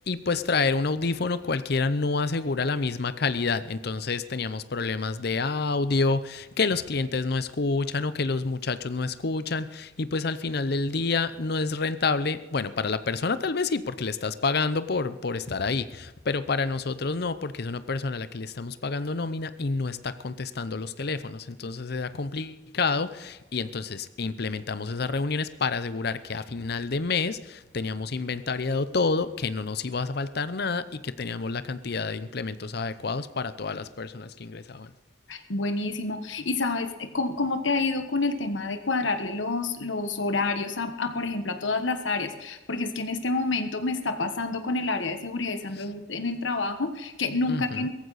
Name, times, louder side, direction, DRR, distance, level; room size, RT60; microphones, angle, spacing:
voice 1, 0.1-34.9 45.8-45.9 47.5-47.9, left 4 dB, 60° left, 13 dB, 0.7 m, -28 dB
voice 2, 35.3-47.9, left 3 dB, 80° left, 8 dB, 1.3 m, -28 dB
17.5 x 14.5 x 4.1 m, 1.1 s
head